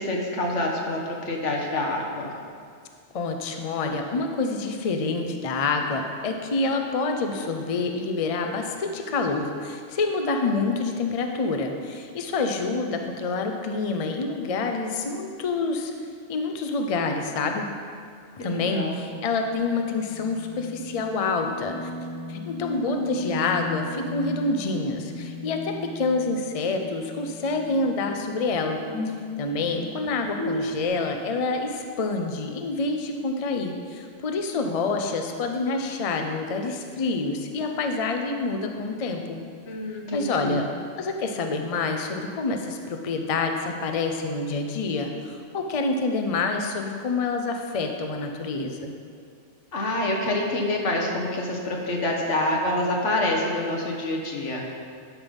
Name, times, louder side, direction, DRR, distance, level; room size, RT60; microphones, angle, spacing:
voice 1, 0.0-2.3 18.4-19.0 29.6-29.8 39.7-40.6 49.7-54.6, left 1 dB, 85° left, 0 dB, 1.6 m, -27 dB
voice 2, 3.1-15.9 16.3-17.7 18.4-21.9 22.3-28.8 29.4-39.4 40.1-40.7 41.0-48.9, left 3 dB, 35° left, 4 dB, 0.6 m, -27 dB
sound 1, 19.1-30.9, left 1 dB, 20° left, 1.5 m, -36 dB
11.5 x 5.5 x 5.3 m, 2.2 s
omnidirectional pair, 1.2 m